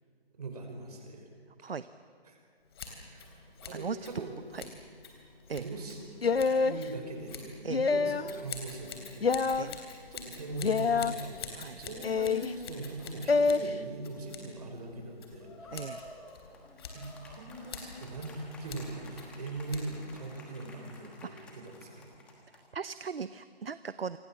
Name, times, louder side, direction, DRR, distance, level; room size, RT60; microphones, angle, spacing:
voice 1, 0.4-1.3 2.2-2.4 3.0-3.3 3.6-4.4 5.6-9.4 10.1-15.9 16.9-22.0, right 2 dB, 40° right, 3 dB, 5.7 m, -41 dB
Scissors, 2.7-20.2, left 5 dB, 25° left, 3.4 m, -48 dB
voice 2, 3.7-4.3 4.5-4.6 5.5-5.6 7.6-7.9 9.6-9.8 11.5-11.8 15.7-16.0 21.3-21.5 22.7-24.2, right 5 dB, 65° right, 14 dB, 0.9 m, -38 dB
sound 1, 6.2-6.8 7.7-8.3 9.2-9.7 10.6-11.1 12.0-12.5 13.3-13.6, left 4 dB, 70° left, 1.1 m, -26 dB
sound 2, 15.4-22.8, left 1 dB, 5° left, 1.3 m, -51 dB
28.0 x 25.0 x 7.5 m, 2.3 s
figure-of-eight pair, 165°, 31 cm